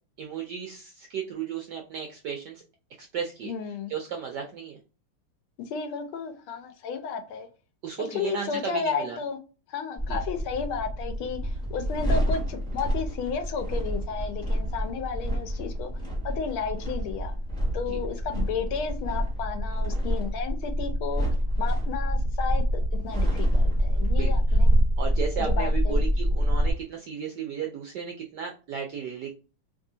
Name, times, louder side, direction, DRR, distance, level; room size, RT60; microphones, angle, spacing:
voice 1, 0.2-2.6 3.0-3.5 3.9-4.8 7.8-9.2 10.1-10.2 17.9-18.0 24.2-24.6 25.0-29.3, right 7 dB, 75° right, 0.9 m, -34 dB
voice 2, 3.4-3.9 5.7-7.5 8.0-9.4 9.7-15.9 16.2-17.3 17.7-21.3 21.6-24.7 25.4-26.0, left 6 dB, 75° left, 1.5 m, -33 dB
sound 1, 10.0-26.7, equal, 5° left, 0.4 m, -26 dB
3.4 x 2.7 x 2.7 m
omnidirectional pair, 2.4 m